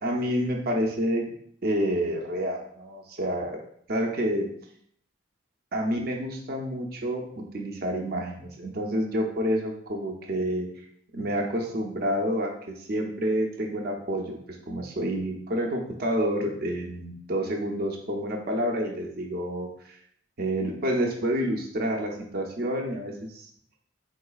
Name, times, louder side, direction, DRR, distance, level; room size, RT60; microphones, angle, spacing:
voice 1, 0.0-1.2 1.6-3.6 3.9-4.5 5.7-10.7 11.1-14.4 14.7-20.0 20.4-23.5, equal, 55° right, 1 dB, 0.6 m, -28 dB
4.7 x 3.7 x 2.3 m, 0.67 s
head